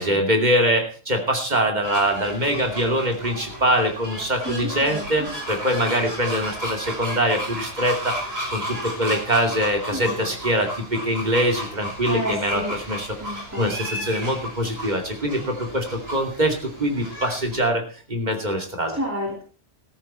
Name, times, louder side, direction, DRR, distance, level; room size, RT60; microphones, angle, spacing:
voice 1, 0.0-17.8 18.1-19.0, equal, 40° right, 3 dB, 2.7 m, -23 dB
sound 1, 1.8-17.6, equal, 55° right, 4.9 m, -33 dB
voice 2, 4.4-5.3 9.9-10.4 12.1-12.7 13.2-13.7 18.9-19.4, equal, 15° right, -2 dB, 3.3 m, -30 dB
14.0 x 13.5 x 4.4 m, 0.40 s
omnidirectional pair, 1.2 m